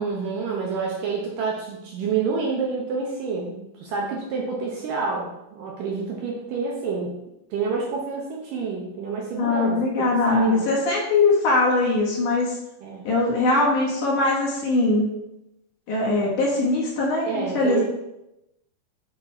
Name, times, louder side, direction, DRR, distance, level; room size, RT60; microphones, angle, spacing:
voice 1, 0.0-7.1 7.5-10.6 12.8-13.1 17.2-17.8, right 5 dB, 70° right, -2 dB, 2.2 m, -28 dB
voice 2, 9.4-12.6 13.0-15.1 15.9-17.8, left 2 dB, 60° left, -4 dB, 2.5 m, -21 dB
8.5 x 4.1 x 4.3 m, 0.89 s
omnidirectional pair, 4.6 m